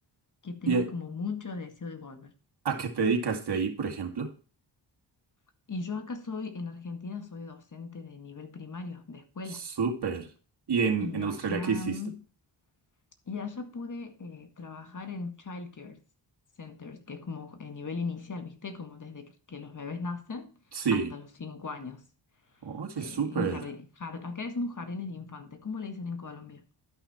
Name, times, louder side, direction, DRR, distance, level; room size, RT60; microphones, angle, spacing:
voice 1, 0.4-2.3 5.7-9.6 11.0-12.2 13.3-16.0 16.6-20.5 20.9-22.0 23.0-26.6, left 4 dB, 40° left, 1.9 m, -38 dB
voice 2, 2.6-4.3 9.8-10.3 10.7-11.8 20.7-21.1 22.6-23.6, right 5 dB, 60° right, 2.4 m, -28 dB
12.0 x 5.7 x 4.3 m
cardioid pair, 70°, 46 cm